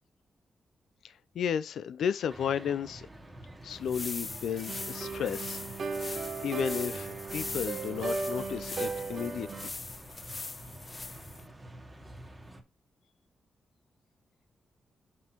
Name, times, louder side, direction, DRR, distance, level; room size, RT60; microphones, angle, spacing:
voice 1, 1.0-3.1 3.6-5.6 6.4-9.7, left 8 dB, 85° left, 0.5 m, -33 dB
sound 1, 2.3-12.6, right 1 dB, 15° right, 1.7 m, -48 dB
sound 2, 3.7-11.5, left 3 dB, 30° left, 0.6 m, -41 dB
sound 3, 4.7-9.7, right 4 dB, 55° right, 1.3 m, -36 dB
6.1 x 5.5 x 4.4 m
cardioid pair, 115°, 0 cm